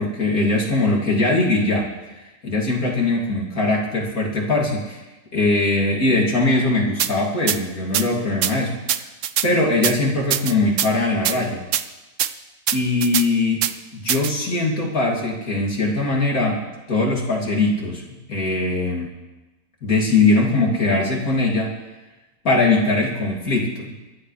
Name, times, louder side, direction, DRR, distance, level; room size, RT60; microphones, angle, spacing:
voice 1, 0.0-1.9 2.1-5.0 5.3-9.0 9.4-11.6 12.7-13.6 13.9-16.6 16.9-19.1 19.8-21.7 22.4-23.9, left 2 dB, 80° left, -2 dB, 3.3 m, -21 dB
sound 1, 7.0-7.1 7.5-7.6 7.9-8.1 8.4-8.5 8.9-9.5 9.8-9.9 10.3-10.9 11.3-11.4 11.7-11.8 12.2-12.3 12.7-13.3 13.6-13.7 14.1-14.3, right 10 dB, 65° right, 1.0 m, -21 dB
25.0 x 11.0 x 3.3 m, 1.1 s
omnidirectional pair, 1.5 m